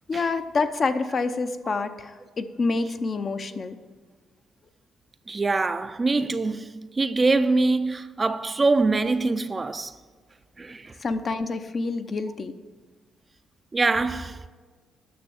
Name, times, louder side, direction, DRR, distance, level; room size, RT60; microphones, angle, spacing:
voice 1, 0.1-3.8 11.0-12.5, left 3 dB, 40° left, 0.6 m, -27 dB
voice 2, 5.3-9.9 10.6-11.0 13.7-14.5, right 3 dB, 25° right, 0.5 m, -24 dB
9.5 x 6.1 x 7.0 m
cardioid pair, 90°, 0 cm